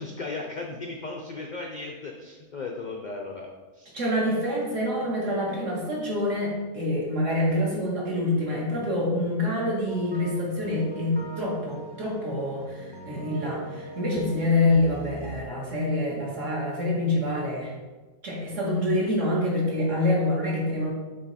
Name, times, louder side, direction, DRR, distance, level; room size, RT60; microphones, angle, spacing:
voice 1, 0.0-3.5 3.7-3.9, left 3 dB, 70° left, 1 dB, 0.4 m, -36 dB
voice 2, 3.9-17.7 18.2-20.9, left 1 dB, 55° right, -4 dB, 1.9 m, -26 dB
sound 1, 9.9-15.4, right 1 dB, 20° right, 0.9 m, -40 dB
7.4 x 3.1 x 4.1 m, 1.2 s
omnidirectional pair, 1.5 m